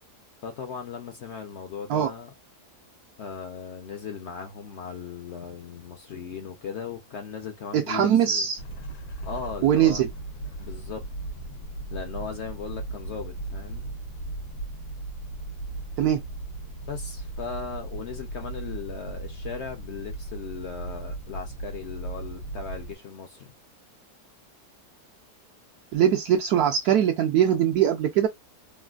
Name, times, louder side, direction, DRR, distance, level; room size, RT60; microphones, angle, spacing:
voice 1, 0.4-2.3 3.2-8.5 9.2-10.0 10.6-11.1 11.9-13.9 16.9-23.5, left 6 dB, 65° left, 0.7 m, -37 dB
voice 2, 7.7-8.6 9.6-10.1 16.0-16.2 25.9-28.3, right 10 dB, 75° right, 1.0 m, -21 dB
sound 1, 8.6-22.9, right 2 dB, 85° left, 1.4 m, -37 dB
3.3 x 2.2 x 2.3 m
omnidirectional pair, 1.7 m